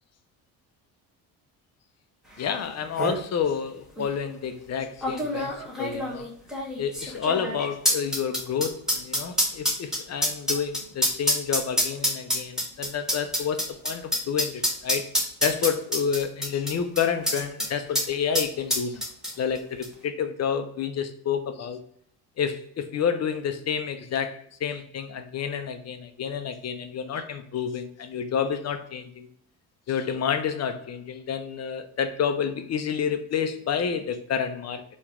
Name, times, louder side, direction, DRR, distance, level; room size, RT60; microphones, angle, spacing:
voice 1, 2.4-6.3 6.8-15.1 15.4-19.0 19.4-21.8 22.4-29.3 29.9-34.8, left 7 dB, 40° left, 0.7 m, -29 dB
sound 1, 2.5-2.6 2.8-3.2 4.0-4.1 5.0-17.7 18.0-18.1 18.3-19.6 19.8-19.9, equal, ahead, 1.5 m, -26 dB
4.4 x 3.1 x 3.6 m
cardioid pair, 110°, 39 cm